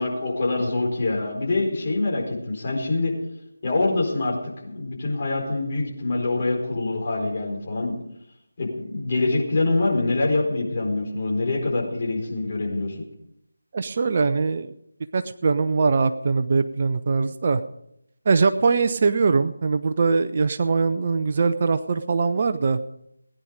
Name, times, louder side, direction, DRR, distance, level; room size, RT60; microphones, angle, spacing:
voice 1, 0.0-3.1 3.6-8.0 8.6-13.0, left 2 dB, 35° left, -2 dB, 4.6 m, -25 dB
voice 2, 13.7-14.7 15.1-17.6 18.3-22.8, right 4 dB, 35° right, 10 dB, 0.6 m, -22 dB
19.0 x 10.5 x 5.2 m, 0.79 s
figure-of-eight pair, 160°, 0 cm